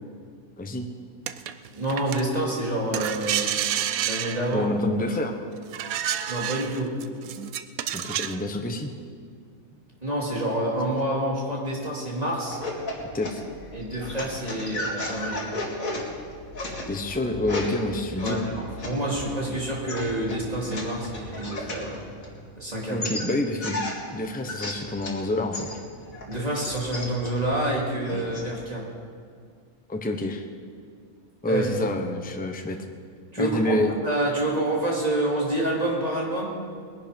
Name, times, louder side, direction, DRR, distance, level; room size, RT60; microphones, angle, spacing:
sound 1, 1.3-2.2 2.9-4.8 5.7-8.4, right 10 dB, 85° right, 1.1 m, -29 dB
voice 1, 1.7-3.5 4.0-4.7 6.3-6.9 10.0-12.6 13.7-15.4 18.2-22.0 22.6-23.1 26.3-28.8 31.5-31.6 33.3-36.5, right 1 dB, 25° right, -4 dB, 3.1 m, -28 dB
voice 2, 4.5-5.4 7.9-8.9 13.1-13.4 16.9-18.5 22.9-23.8 24.1-25.7 29.9-30.5 31.4-32.8 33.4-33.9, left 1 dB, 10° left, 5 dB, 0.8 m, -27 dB
sound 2, 12.5-22.6 23.0-25.2 25.5-28.5, left 2 dB, 80° left, 2.6 m, -35 dB
20.5 x 11.0 x 5.3 m, 2.1 s
omnidirectional pair, 1.4 m